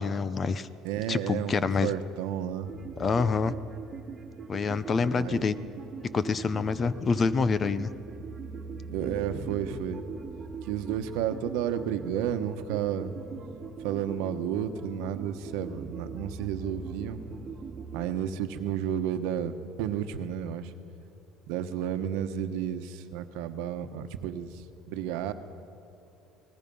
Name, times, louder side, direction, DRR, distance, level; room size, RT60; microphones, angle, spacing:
voice 1, 0.0-0.7 1.1-1.9 3.0-3.5 4.5-5.6 6.1-7.9, left 5 dB, 25° left, 15 dB, 0.7 m, -26 dB
voice 2, 0.8-2.8 5.1-5.5 8.9-10.0 10.6-13.1 13.8-17.2 17.9-20.7 21.5-25.3, right 9 dB, 85° right, 9 dB, 1.1 m, -32 dB
sound 1, 2.6-18.1, right 5 dB, 20° right, 1.6 m, -41 dB
29.0 x 19.5 x 5.5 m, 2.7 s
cardioid pair, 145°, 0 cm